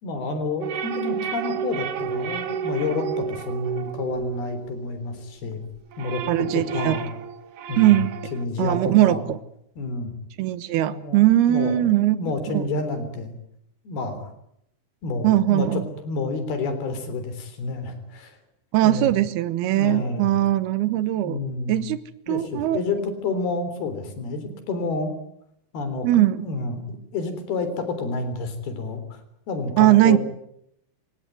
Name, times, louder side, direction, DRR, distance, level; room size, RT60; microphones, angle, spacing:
voice 1, 0.0-5.6 6.0-7.1 7.7-8.0 8.3-9.2 9.8-10.1 10.9-11.2 11.5-13.4 13.9-14.3 15.0-18.4 18.8-19.1 19.8-20.3 21.2-21.8 22.3-25.1 25.7-29.2 29.5-30.2, left 3 dB, 70° left, 9 dB, 5.4 m, -29 dB
sound 1, 0.6-5.3 5.7-8.4, right 7 dB, 60° right, 1.7 m, -31 dB
voice 2, 6.3-7.0 7.8-8.1 8.6-9.4 10.4-12.6 15.2-15.9 18.7-21.4 21.7-22.0 22.3-22.8 26.0-26.5 29.8-30.2, right 14 dB, 75° right, 14 dB, 3.1 m, -20 dB
27.5 x 18.0 x 9.5 m, 0.75 s
omnidirectional pair, 4.6 m